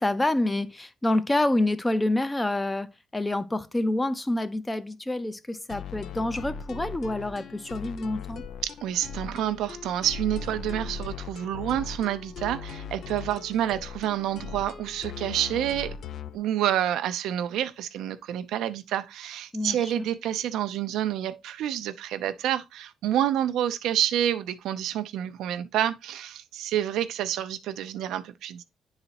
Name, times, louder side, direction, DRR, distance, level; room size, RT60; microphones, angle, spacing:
voice 1, 0.0-8.4 19.5-20.1, left 1 dB, 15° left, 0.6 m, -27 dB
sound 1, 5.7-16.4, left 6 dB, 70° left, 0.6 m, -39 dB
voice 2, 8.6-15.9 16.3-28.6, right 11 dB, 85° right, 0.5 m, -28 dB
9.6 x 4.0 x 2.9 m
cardioid pair, 90°, 0 cm